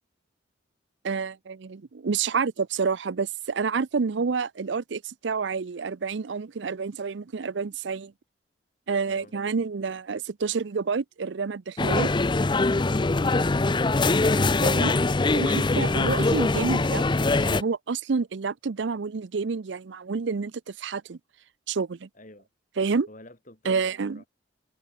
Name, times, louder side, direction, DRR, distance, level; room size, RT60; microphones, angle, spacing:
voice 1, 1.0-8.1 8.9-12.1 14.6-14.9 15.3-21.2 21.7-22.1 22.8-23.1 23.7-24.2, right 5 dB, 65° right, 0.5 m, -29 dB
sound 1, 11.8-17.6, left 3 dB, 25° left, 0.5 m, -23 dB
voice 2, 22.1-22.5 23.1-24.3, left 1 dB, 40° left, 5.4 m, -49 dB
open air
head